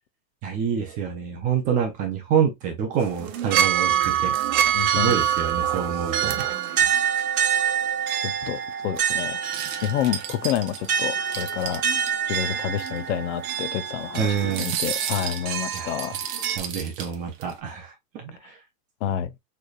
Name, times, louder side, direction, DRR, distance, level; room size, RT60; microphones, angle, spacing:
voice 1, 0.4-4.3 4.9-6.5 6.9-7.0 14.2-14.7 15.7-15.9 16.6-18.6, right 7 dB, 15° right, 0.5 m, -27 dB
sound 1, 3.0-16.6, right 9 dB, 60° right, 1.3 m, -26 dB
voice 2, 4.7-5.1 6.7-6.9 8.2-9.4 9.8-11.8 12.3-16.1 19.0-19.3, left 10 dB, 45° left, 0.6 m, -29 dB
sound 2, 9.4-12.1 12.5-12.6 12.8-13.0 14.4-17.5, right 9 dB, 35° right, 0.9 m, -33 dB
6.5 x 3.3 x 2.3 m
supercardioid pair, 155°, 49 cm